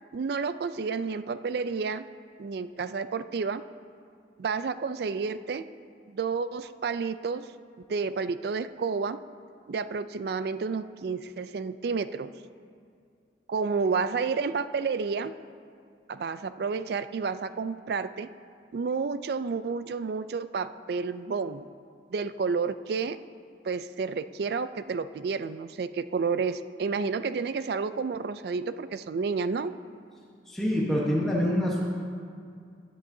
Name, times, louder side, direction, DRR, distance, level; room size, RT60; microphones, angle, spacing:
voice 1, 0.1-2.1 2.4-3.6 4.4-5.6 6.1-7.5 7.9-9.2 9.7-12.3 13.5-15.3 16.1-18.3 18.7-21.6 22.1-23.2 23.6-29.8, right 5 dB, 60° right, 13 dB, 0.3 m, -30 dB
voice 2, 30.5-31.8, equal, ahead, -6 dB, 1.0 m, -26 dB
16.0 x 10.0 x 2.7 m, 2.3 s
head